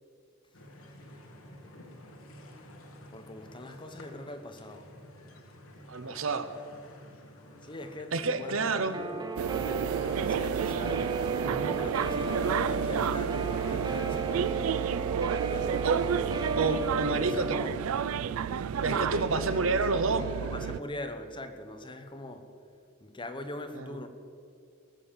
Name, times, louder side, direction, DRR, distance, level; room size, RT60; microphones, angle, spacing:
sound 1, 0.5-14.9, left 1 dB, 75° left, 1.7 m, -51 dB
voice 1, 3.1-4.9 7.6-9.2 9.6-11.2 11.6-14.9 15.4-15.9 16.6-17.8 18.8-19.6 20.1-22.5 23.0-24.1, left 1 dB, 25° left, 1.0 m, -41 dB
voice 2, 5.9-6.6 8.1-9.0 11.4-11.8 15.8-16.0 16.6-17.6 18.7-20.3 23.8-24.0, right 3 dB, 65° right, 0.9 m, -29 dB
Guitar, 8.9-17.6, right 3 dB, 20° right, 0.6 m, -35 dB
sound 2, 9.4-20.8, right 7 dB, 85° right, 0.4 m, -31 dB
19.5 x 7.2 x 7.2 m
head